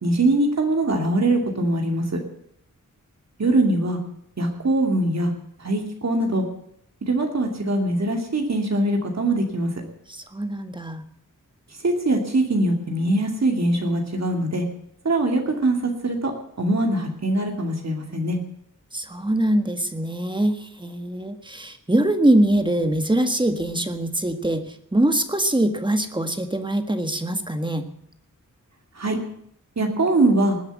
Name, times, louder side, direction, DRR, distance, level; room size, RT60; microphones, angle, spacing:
voice 1, 0.0-2.2 3.4-4.0 4.4-5.3 5.6-6.4 7.0-9.7 11.8-14.7 15.0-16.3 16.6-18.4 28.9-29.2 29.8-30.6, right 2 dB, 55° right, 2 dB, 2.8 m, -22 dB
voice 2, 10.1-11.0 18.9-27.8, right 1 dB, 15° right, 7 dB, 1.5 m, -23 dB
20.0 x 8.2 x 8.3 m, 0.70 s
wide cardioid pair, 105°, 32 cm